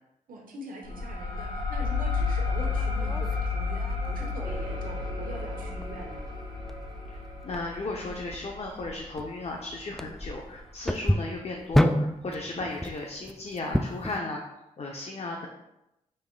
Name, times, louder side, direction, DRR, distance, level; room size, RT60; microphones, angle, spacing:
voice 1, 0.3-6.3, right 2 dB, 70° right, 0 dB, 1.0 m, -43 dB
sound 1, 0.8-10.1, left 4 dB, 65° left, 1.1 m, -32 dB
sound 2, 2.1-14.2, equal, ahead, 0.3 m, -32 dB
sound 3, 4.4-10.0, right 4 dB, 30° right, 0.7 m, -45 dB
voice 2, 7.4-14.4 14.8-15.5, left 2 dB, 45° left, 1 dB, 0.6 m, -35 dB
5.2 x 3.5 x 2.2 m, 0.90 s
supercardioid pair, 45°, 15 cm